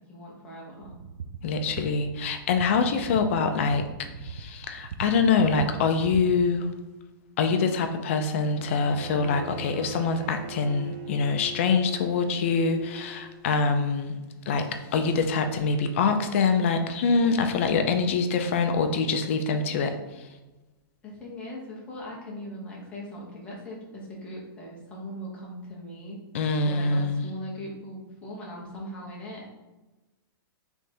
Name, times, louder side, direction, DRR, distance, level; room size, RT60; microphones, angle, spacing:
voice 1, 0.1-0.9 21.0-26.2 26.6-29.6, equal, 10° left, -4 dB, 0.9 m, -40 dB
sound 1, 0.8-6.5, right 6 dB, 65° right, 0.4 m, -39 dB
voice 2, 1.4-6.7 7.4-14.2 14.5-20.3 26.3-27.2, left 4 dB, 35° left, 6 dB, 0.4 m, -25 dB
Bowed string instrument, 8.5-13.4, right 3 dB, 30° right, 0.8 m, -41 dB
3.6 x 3.4 x 4.2 m, 1.1 s
hypercardioid pair, 170°, 12 cm